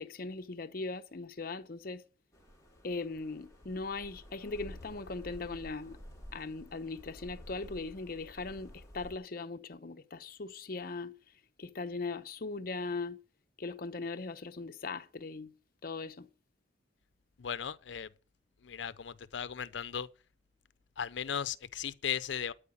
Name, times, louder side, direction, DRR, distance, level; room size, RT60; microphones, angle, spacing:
voice 1, 0.0-2.0 2.8-6.0 6.3-11.1 11.6-13.2 13.6-15.5 15.8-16.3, left 3 dB, 55° left, 0.8 m, -39 dB
sound 1, 2.3-9.2, equal, 15° left, 3.4 m, -51 dB
voice 2, 17.4-18.1 18.6-20.1 21.0-22.5, left 8 dB, 90° left, 0.6 m, -37 dB
12.5 x 4.9 x 8.6 m
head